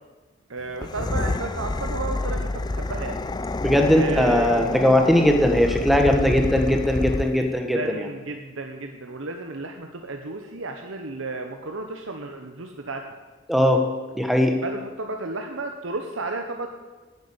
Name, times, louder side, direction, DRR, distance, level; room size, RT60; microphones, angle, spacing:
voice 1, 0.5-3.2 4.0-4.7 7.4-13.1 14.6-16.7, right 2 dB, 75° right, 4 dB, 1.0 m, -33 dB
sound 1, 0.7-7.5, left 2 dB, 20° left, 0.4 m, -28 dB
voice 2, 3.6-8.1 13.5-13.8 14.1-14.6, left 1 dB, ahead, 4 dB, 1.3 m, -19 dB
11.0 x 7.9 x 8.7 m, 1.3 s
head